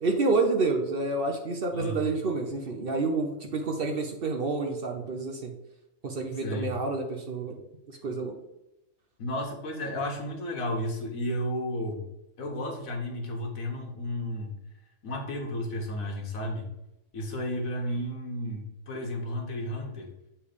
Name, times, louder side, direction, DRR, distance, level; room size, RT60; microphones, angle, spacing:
voice 1, 0.0-5.5 6.0-7.6 8.0-8.4, right 3 dB, 50° right, 4 dB, 0.8 m, -28 dB
voice 2, 1.7-2.1 6.4-6.7 9.2-12.0 12.4-14.6 15.0-16.7 17.1-20.1, left 1 dB, 80° left, 2 dB, 1.6 m, -33 dB
7.3 x 3.4 x 5.0 m, 0.91 s
omnidirectional pair, 1.4 m